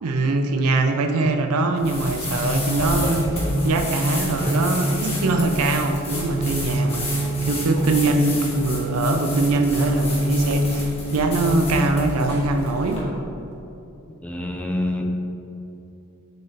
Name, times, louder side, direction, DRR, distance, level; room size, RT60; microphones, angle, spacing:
voice 1, 0.0-13.0, right 2 dB, 70° right, 5 dB, 0.5 m, -22 dB
sound 1, 1.8-13.0, left 1 dB, 30° left, 1.5 m, -31 dB
sound 2, 2.3-11.7, equal, 70° left, 0.9 m, -26 dB
voice 2, 14.2-15.1, left 1 dB, 5° left, 1 dB, 0.4 m, -26 dB
6.4 x 4.6 x 3.3 m, 2.8 s
head